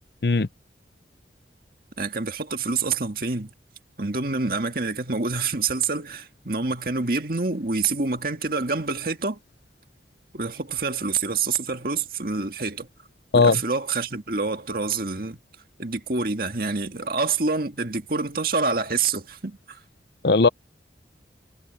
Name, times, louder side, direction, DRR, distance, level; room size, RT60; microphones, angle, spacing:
voice 1, 0.2-0.5 13.3-13.6 20.2-20.5, left 4 dB, 60° left, 0.7 m, -17 dB
voice 2, 2.0-3.5 4.0-9.4 10.3-12.9 13.3-15.4 15.8-19.8, right 4 dB, 50° right, 1.9 m, -27 dB
head